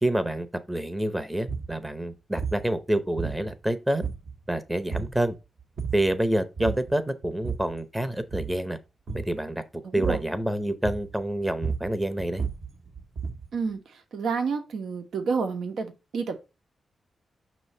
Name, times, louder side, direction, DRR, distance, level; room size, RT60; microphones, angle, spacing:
voice 1, 0.0-4.0 4.5-5.4 5.9-8.8 9.1-9.6 9.9-12.4, right 1 dB, 10° right, 0.7 m, -27 dB
sound 1, 1.5-1.7 2.4-2.7 3.2-3.7 4.0-4.5 4.9-5.2 5.6-6.1 6.6-6.9 7.2-7.8 8.2-8.6 9.1-9.4 10.0-10.4 10.8-11.2 11.5-13.5, right 5 dB, 60° right, 1.0 m, -33 dB
voice 2, 9.8-10.2 13.5-16.3, right 5 dB, 85° right, 1.1 m, -29 dB
6.1 x 3.0 x 5.3 m
wide cardioid pair, 120°, 0 cm